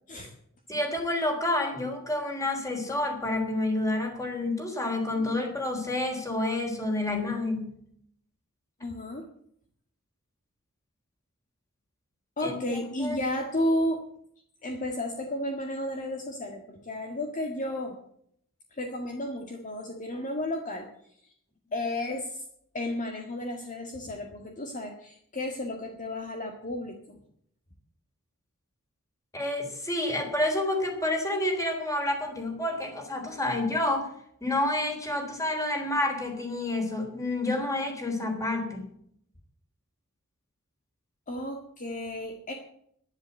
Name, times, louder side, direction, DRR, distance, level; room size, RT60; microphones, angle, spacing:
voice 1, 0.7-7.7 12.4-13.2 29.3-34.1 34.4-38.9, left 1 dB, 15° left, 3 dB, 3.7 m, -29 dB
voice 2, 8.8-9.2 12.4-14.0 14.6-18.0 18.7-20.9 21.7-22.4 22.7-27.2 41.3-42.5, left 1 dB, 35° left, 3 dB, 1.8 m, -32 dB
11.0 x 11.0 x 8.2 m, 0.68 s
head